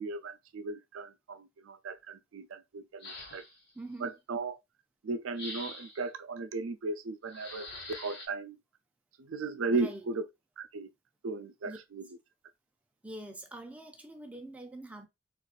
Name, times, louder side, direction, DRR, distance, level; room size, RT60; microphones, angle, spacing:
voice 1, 0.0-3.4 4.0-4.6 5.0-8.6 9.2-10.2 10.6-10.9 11.2-12.0, right 3 dB, 80° right, 0.4 m, -36 dB
sound 1, 3.0-3.7 5.4-6.1 7.3-8.3, left 2 dB, 55° left, 1.1 m, -44 dB
voice 2, 3.7-4.1 9.7-10.1 11.6-11.8 13.0-15.1, right 1 dB, 5° right, 0.5 m, -44 dB
4.0 x 2.5 x 2.4 m
head